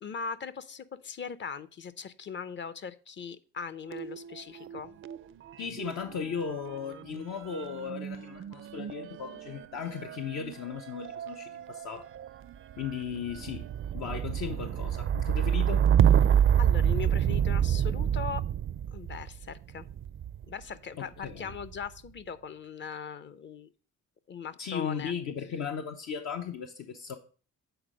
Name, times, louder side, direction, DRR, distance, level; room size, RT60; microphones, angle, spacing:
voice 1, 0.0-4.9 16.6-18.4 18.9-19.9 20.5-23.7 24.3-25.1, left 6 dB, 40° left, 0.6 m, -40 dB
sound 1, 3.9-5.2 5.5-20.5 21.3-21.9, right 9 dB, 45° right, 0.4 m, -28 dB
voice 2, 5.6-12.1 12.8-13.6 13.9-15.8 21.0-21.5 24.6-27.2, left 7 dB, 70° left, 0.8 m, -36 dB
8.0 x 4.1 x 5.0 m
cardioid pair, 90°, 30 cm